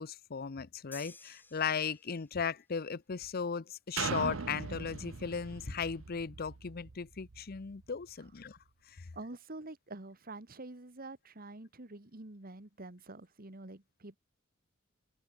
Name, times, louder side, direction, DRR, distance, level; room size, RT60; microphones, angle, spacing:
voice 1, 0.0-8.6 8.9-9.1, left 6 dB, 45° left, 0.6 m, -37 dB
sound 1, 0.9-2.5, left 3 dB, 10° left, 1.9 m, -54 dB
sound 2, 4.0-7.7 8.3-8.4, right 5 dB, 80° right, 0.8 m, -40 dB
voice 2, 9.1-14.2, right 2 dB, 45° right, 2.0 m, -47 dB
open air
head